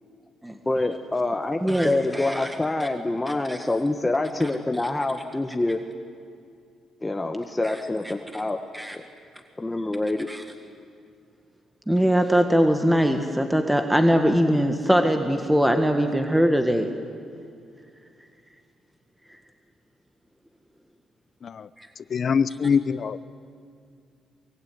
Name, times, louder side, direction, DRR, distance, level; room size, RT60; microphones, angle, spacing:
voice 1, 0.6-5.8 7.0-8.6 8.9-9.0 9.6-10.3, left 2 dB, 15° left, 4 dB, 1.2 m, -26 dB
voice 2, 1.6-2.5 2.8-2.9 3.5-3.6 7.6-7.7 8.7-9.0 10.3-10.4 11.9-16.9 21.8-21.9, equal, 5° right, 5 dB, 1.7 m, -21 dB
voice 3, 22.1-23.2, left 6 dB, 50° left, 15 dB, 0.8 m, -23 dB
23.5 x 23.0 x 9.6 m, 2.3 s
cardioid pair, 90°, 0 cm